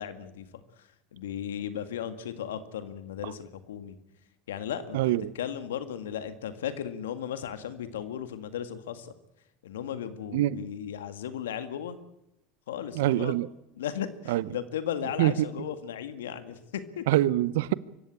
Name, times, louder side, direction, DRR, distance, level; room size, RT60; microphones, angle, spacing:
voice 1, 0.0-4.0 4.5-5.0 5.3-9.1 9.6-12.0 12.7-13.3 13.8-17.0, left 9 dB, 80° left, 1.9 m, -36 dB
voice 2, 4.9-5.3 10.3-10.6 12.9-13.5 14.3-14.4 15.2-15.3 17.1-17.7, right 15 dB, 75° right, 0.8 m, -24 dB
24.5 x 14.5 x 8.8 m
hypercardioid pair, 80°, 0 cm